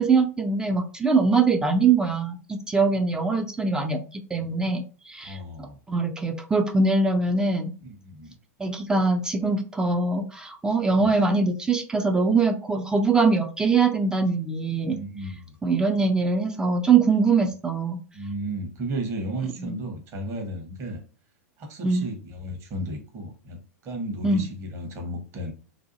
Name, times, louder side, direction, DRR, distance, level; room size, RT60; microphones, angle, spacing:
voice 1, 0.0-5.4 5.9-7.7 8.6-15.0 15.6-18.0 19.6-19.7 21.8-22.1 24.2-24.4, right 4 dB, 10° right, 5 dB, 0.3 m, -22 dB
voice 2, 5.2-5.8 7.8-8.4 11.0-11.1 14.8-15.6 18.1-21.0 21.6-25.5, right 1 dB, 35° right, 3 dB, 0.9 m, -34 dB
2.6 x 2.3 x 2.6 m, 0.36 s
figure-of-eight pair, 95°, 8 cm